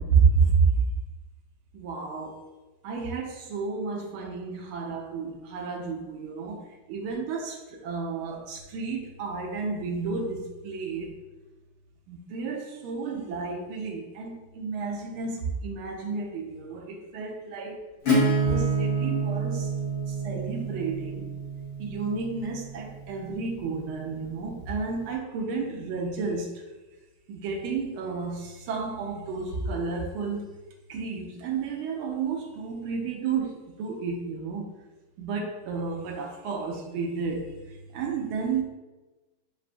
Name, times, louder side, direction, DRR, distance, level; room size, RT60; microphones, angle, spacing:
voice 1, 0.1-0.7 1.7-2.4 2.8-6.6 6.9-11.1 12.1-17.8 18.4-19.7 20.1-21.3 21.8-26.5 27.3-30.5 30.9-34.7 35.2-37.5 37.9-38.6, right 5 dB, 85° right, 0 dB, 1.6 m, -30 dB
Acoustic guitar / Strum, 18.1-23.6, right 2 dB, 50° left, 0.9 m, -28 dB
7.3 x 2.5 x 2.3 m, 1.1 s
omnidirectional pair, 2.3 m